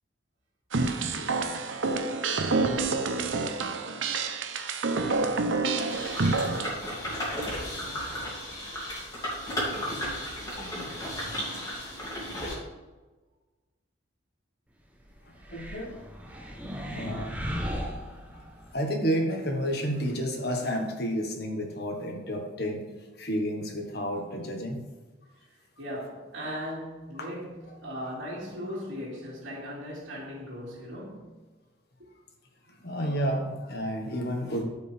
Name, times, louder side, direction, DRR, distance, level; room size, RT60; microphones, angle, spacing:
sound 1, 0.7-6.7, right 3 dB, 90° right, 0.7 m, -28 dB
sound 2, 5.7-12.5, equal, 20° left, 2.5 m, -34 dB
sound 3, 15.4-18.7, equal, 10° right, 0.8 m, -36 dB
voice 1, 15.5-15.9 16.9-17.3 18.7-22.9 23.2-24.8 32.8-34.6, equal, 55° left, 1.4 m, -30 dB
voice 2, 25.8-31.4, equal, 75° right, 2.4 m, -38 dB
12.5 x 5.2 x 3.4 m
head